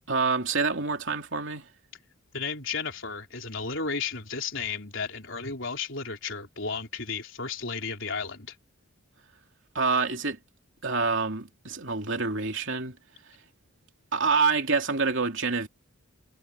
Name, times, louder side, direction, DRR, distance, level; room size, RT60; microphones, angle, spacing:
voice 1, 0.1-1.7 9.7-10.4 10.8-13.0 14.1-15.7, right 4 dB, 55° right, 3.2 m, -27 dB
voice 2, 2.3-8.5, left 5 dB, 60° left, 4.1 m, -33 dB
head